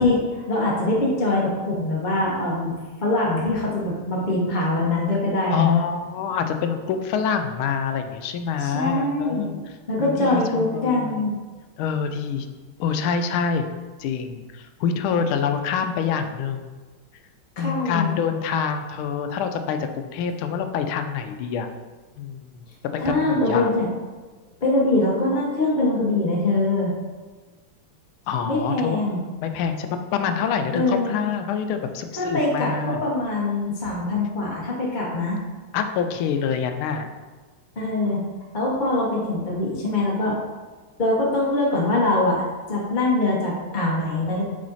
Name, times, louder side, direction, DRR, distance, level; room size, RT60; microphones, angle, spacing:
voice 1, 0.0-2.7 3.0-5.8 8.6-9.5 9.9-11.3 17.6-18.1 23.0-23.9 24.6-26.9 28.5-29.2 30.7-31.2 32.2-35.4 37.8-38.2 38.5-40.4 41.0-44.5, left 2 dB, 35° left, -4 dB, 0.8 m, -23 dB
voice 2, 5.5-9.6 10.0-11.2 11.8-12.5 12.8-13.7 14.0-16.7 17.6-21.7 22.2-22.7 23.0-23.7 28.3-29.0 29.4-33.0 35.7-37.1, left 7 dB, 80° left, 7 dB, 1.4 m, -26 dB
6.4 x 3.8 x 4.0 m, 1.3 s
omnidirectional pair, 2.3 m